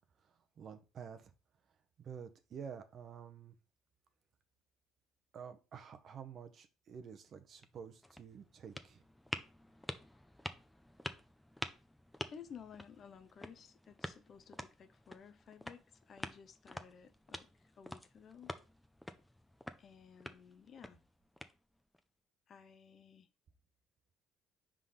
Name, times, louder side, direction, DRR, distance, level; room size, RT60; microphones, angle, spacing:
voice 1, 0.2-1.3 2.0-3.5 5.3-9.0, right 7 dB, 50° right, 0.9 m, -50 dB
sound 1, 7.4-22.0, left 1 dB, 5° left, 0.6 m, -49 dB
voice 2, 12.3-18.5 19.8-21.0 22.5-23.3, left 7 dB, 45° left, 0.7 m, -55 dB
4.9 x 3.8 x 5.7 m
cardioid pair, 100°, 0 cm